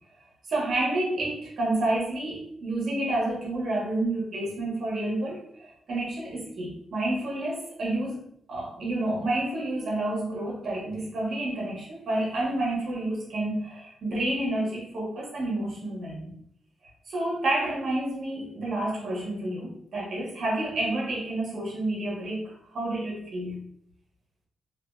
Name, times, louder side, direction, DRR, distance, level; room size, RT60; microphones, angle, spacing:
voice 1, 0.5-8.2 8.5-16.4 17.1-23.6, right 1 dB, 65° right, -3 dB, 1.0 m, -29 dB
2.7 x 2.4 x 2.3 m, 0.71 s
cardioid pair, 105°, 0 cm